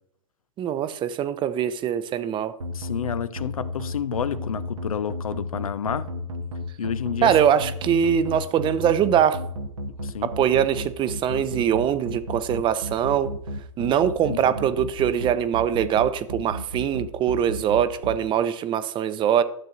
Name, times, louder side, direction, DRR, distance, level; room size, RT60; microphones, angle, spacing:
voice 1, 0.6-2.5 7.2-9.4 10.2-13.3 13.8-19.4, right 9 dB, 30° right, 0.6 m, -22 dB
sound 1, 2.6-18.2, equal, 80° right, 1.0 m, -32 dB
voice 2, 2.7-6.1 6.8-7.3 10.0-10.3 14.3-14.6, left 8 dB, 90° left, 0.5 m, -29 dB
12.0 x 7.5 x 2.5 m
hypercardioid pair, 110°, 17 cm